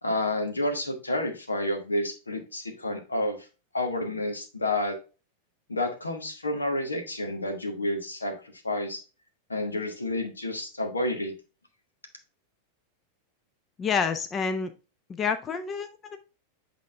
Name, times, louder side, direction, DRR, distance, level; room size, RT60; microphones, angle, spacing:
voice 1, 0.0-3.4 3.7-5.0 5.7-8.3 8.6-9.0 9.5-11.3, left 1 dB, 80° left, 5 dB, 1.3 m, -29 dB
voice 2, 13.8-14.7 15.1-16.2, left 6 dB, 25° left, 9 dB, 0.6 m, -28 dB
8.5 x 3.7 x 3.4 m, 0.33 s
figure-of-eight pair, 90°, 0 cm